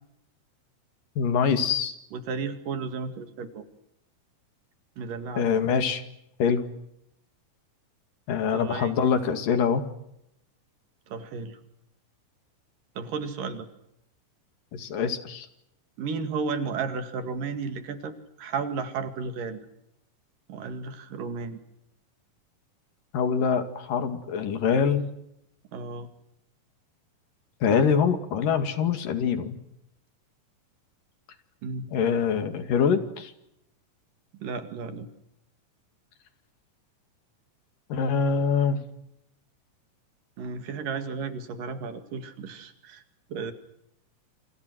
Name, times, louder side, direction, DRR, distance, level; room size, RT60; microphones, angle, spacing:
voice 1, 1.2-2.0 5.4-6.0 6.4-6.6 8.3-9.8 14.7-15.5 23.1-25.0 27.6-29.6 31.9-33.3 37.9-38.8, left 6 dB, 90° left, 8 dB, 3.9 m, -24 dB
voice 2, 2.1-3.7 5.0-5.5 8.5-8.9 11.1-11.6 13.0-13.7 16.0-19.7 20.5-21.6 25.7-26.1 31.6-31.9 34.4-35.1 40.4-43.0 43.3-43.5, right 5 dB, 85° right, 8 dB, 3.9 m, -33 dB
28.5 x 28.0 x 6.3 m, 0.78 s
omnidirectional pair, 3.8 m